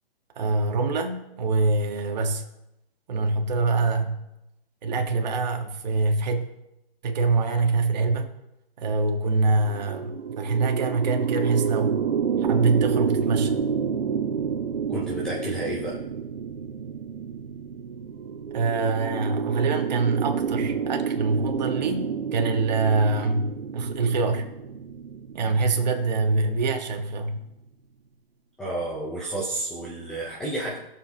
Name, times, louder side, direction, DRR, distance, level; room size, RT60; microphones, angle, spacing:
voice 1, 0.4-2.4 3.1-4.2 4.8-6.4 7.0-8.3 8.8-12.0 12.5-13.5 18.5-24.4 25.3-27.4, right 3 dB, 45° right, 4 dB, 1.6 m, -24 dB
sound 1, 9.6-27.0, right 6 dB, 70° right, 1.1 m, -29 dB
voice 2, 14.9-16.0 28.6-30.8, right 1 dB, ahead, -6 dB, 0.5 m, -31 dB
20.0 x 7.2 x 2.9 m, 0.90 s
hypercardioid pair, 150°, 30 cm